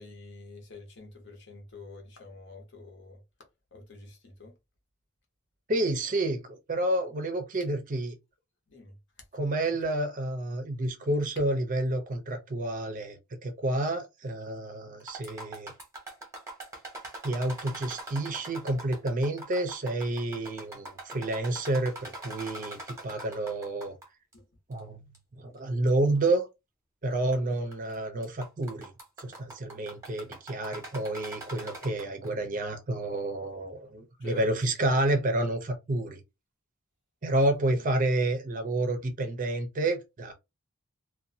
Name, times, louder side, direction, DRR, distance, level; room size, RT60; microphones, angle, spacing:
voice 1, 0.0-3.2 3.7-4.6 8.7-9.0 24.3-24.5 27.2-27.5 29.7-29.8 34.2-34.5 37.7-37.8, left 3 dB, 55° left, 0.9 m, -48 dB
voice 2, 5.7-8.2 9.3-15.7 17.2-23.9 24.7-25.0 25.3-26.5 27.0-28.9 29.2-36.2 37.2-40.3, right 1 dB, 35° right, 0.5 m, -29 dB
sound 1, 15.0-24.0 24.3-24.4 25.1-25.2 25.9-26.0 27.1-27.4 27.7-27.9 28.2-32.3, right 2 dB, 15° right, 0.8 m, -42 dB
2.5 x 2.2 x 2.6 m
head